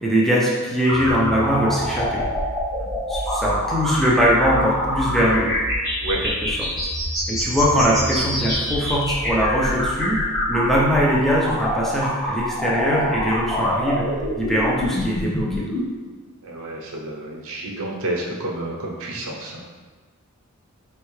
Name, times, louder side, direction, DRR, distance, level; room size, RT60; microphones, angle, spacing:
voice 1, 0.0-2.3 3.1-5.5 6.2-6.9 7.3-14.1 14.4-15.7, equal, ahead, -5 dB, 0.6 m, -21 dB
sound 1, 0.8-15.8, equal, 15° left, 1.4 m, -25 dB
voice 2, 16.4-19.7, right 1 dB, 70° right, -1 dB, 0.8 m, -30 dB
4.6 x 3.3 x 3.2 m, 1.4 s
head